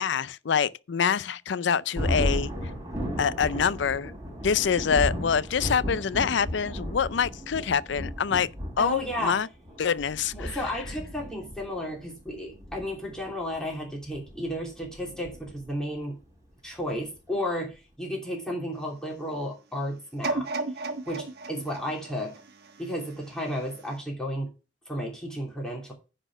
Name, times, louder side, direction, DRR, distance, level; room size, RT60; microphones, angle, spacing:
voice 1, 0.0-2.5 3.2-4.1 4.4-8.5 8.8-9.5 9.8-10.6, left 6 dB, 70° left, 0.5 m, -26 dB
Thunder, 1.9-15.9, equal, 15° right, 4.2 m, -34 dB
voice 2, 8.8-9.4 10.3-16.2 16.6-20.5 21.1-22.3 22.8-24.5 24.9-25.9, left 1 dB, 5° left, 2.9 m, -33 dB
sound 1, 20.2-23.3 23.9-24.0, right 3 dB, 60° right, 1.3 m, -34 dB
10.0 x 4.3 x 5.9 m
head